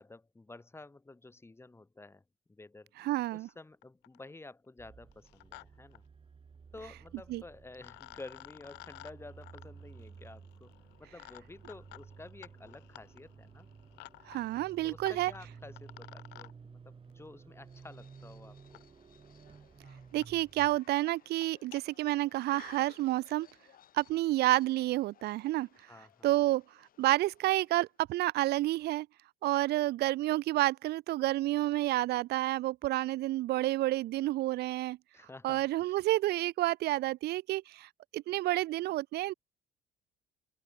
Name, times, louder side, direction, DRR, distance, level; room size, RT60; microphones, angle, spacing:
voice 1, 0.0-2.2 2.5-6.0 6.7-13.7 14.8-18.8 25.9-26.4 35.1-36.0, left 2 dB, 15° left, 7.5 m, -51 dB
voice 2, 3.0-3.5 7.3-7.4 14.3-15.3 20.1-23.5 23.9-25.7 26.2-26.6 27.0-29.1 29.4-35.0 35.4-39.3, right 16 dB, 75° right, 0.7 m, -30 dB
sound 1, 3.5-3.6 3.8-4.3 5.1-5.6 5.9-6.0 7.3-7.4 7.8-16.5 17.8-17.9 18.7-18.8 19.5-19.6 19.8-19.9 20.2-20.3 20.6-20.8 21.2-21.8, left 20 dB, 90° left, 2.9 m, -54 dB
sound 2, 4.8-20.8, right 5 dB, 30° right, 3.4 m, -54 dB
sound 3, 17.6-28.0, left 11 dB, 55° left, 4.8 m, -61 dB
open air
cardioid pair, 110°, 17 cm